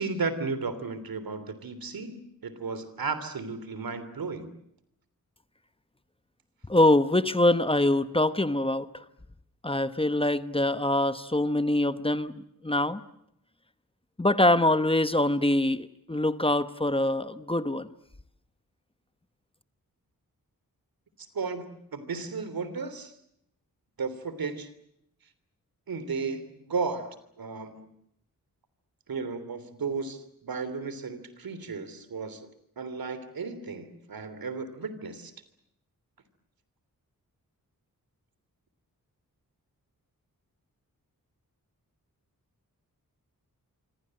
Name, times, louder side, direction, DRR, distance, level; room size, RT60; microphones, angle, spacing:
voice 1, 0.0-4.5 21.3-23.1 24.0-24.7 25.9-27.1 27.4-27.8 29.1-32.5 32.8-35.3, right 4 dB, 85° right, 13 dB, 3.3 m, -34 dB
voice 2, 6.7-8.8 9.6-12.3 12.6-13.0 14.2-17.9, left 1 dB, 15° left, 12 dB, 1.0 m, -24 dB
27.5 x 25.0 x 7.8 m, 0.76 s
wide cardioid pair, 125°, 35 cm